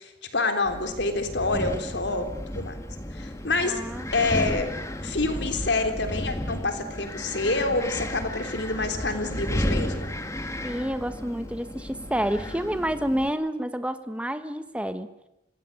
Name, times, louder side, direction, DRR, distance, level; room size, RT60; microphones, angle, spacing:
voice 1, 0.0-2.3 2.5-2.7 3.1-3.8 4.1-4.7 5.0-10.1, left 3 dB, 80° left, 6 dB, 3.5 m, -27 dB
Wind, 0.7-13.3, left 1 dB, 15° left, 1.8 m, -33 dB
voice 2, 3.6-4.1 10.6-15.1, equal, 5° right, 10 dB, 1.3 m, -29 dB
26.0 x 16.5 x 9.9 m, 0.90 s
head